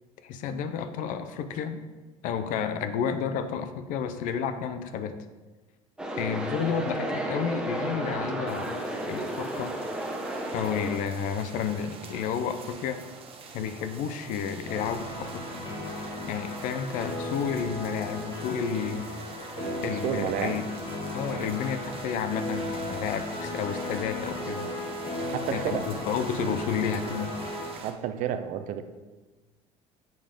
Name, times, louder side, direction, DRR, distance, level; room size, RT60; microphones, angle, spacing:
voice 1, 0.2-1.8 2.2-5.2 6.2-9.8 10.5-13.0 13.5-15.5 16.2-19.1 19.8-20.6 21.1-24.7 25.5-27.3, left 7 dB, 70° left, 10 dB, 0.6 m, -31 dB
sound 1, 6.0-11.0, right 1 dB, 5° right, 1.2 m, -32 dB
sound 2, 8.5-27.9, right 5 dB, 40° right, 1.0 m, -44 dB
sound 3, 14.7-27.7, left 2 dB, 35° left, 1.7 m, -36 dB
voice 2, 19.6-20.6 21.4-21.5 25.2-25.9 27.8-28.8, right 9 dB, 65° right, 10 dB, 0.6 m, -31 dB
7.8 x 3.5 x 5.0 m, 1.2 s
supercardioid pair, 90°, 14 cm